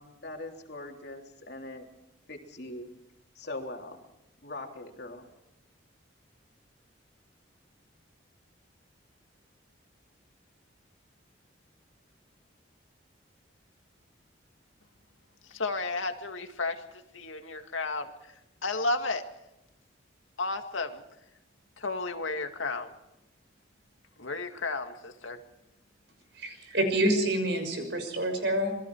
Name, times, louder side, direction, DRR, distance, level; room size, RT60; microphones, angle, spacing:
voice 1, 0.0-1.9 2.3-2.9 3.4-4.0 4.4-5.2, left 2 dB, 55° left, 2 dB, 3.4 m, -41 dB
voice 2, 15.4-19.3 20.4-21.0 21.8-22.9 24.2-25.4, left 3 dB, 85° left, 6 dB, 2.1 m, -33 dB
voice 3, 26.3-28.7, right 1 dB, 60° right, 6 dB, 6.1 m, -27 dB
27.5 x 21.5 x 4.8 m, 0.88 s
head